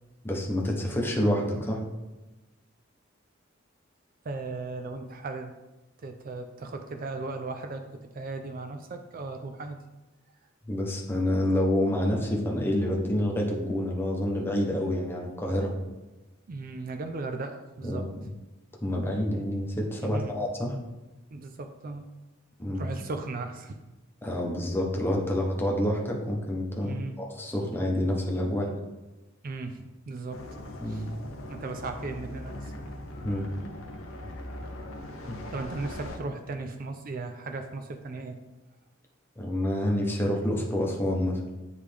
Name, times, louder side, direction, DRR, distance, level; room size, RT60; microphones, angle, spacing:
voice 1, 0.2-1.8 10.7-15.7 17.8-18.2 18.8-20.8 22.6-22.8 24.2-28.7 30.8-31.0 33.2-33.5 35.2-35.4 39.4-41.4, left 1 dB, 10° left, -1 dB, 0.9 m, -28 dB
voice 2, 4.2-5.5 6.0-7.8 8.1-9.8 16.5-18.1 20.0-20.4 21.3-22.1 22.8-23.8 26.8-27.2 29.4-30.4 30.9-31.1 31.5-32.7 35.5-38.4, right 3 dB, 45° right, 6 dB, 0.4 m, -36 dB
sound 1, 30.3-36.2, left 1 dB, 90° left, 0.8 m, -40 dB
9.4 x 3.3 x 3.4 m, 1.1 s
head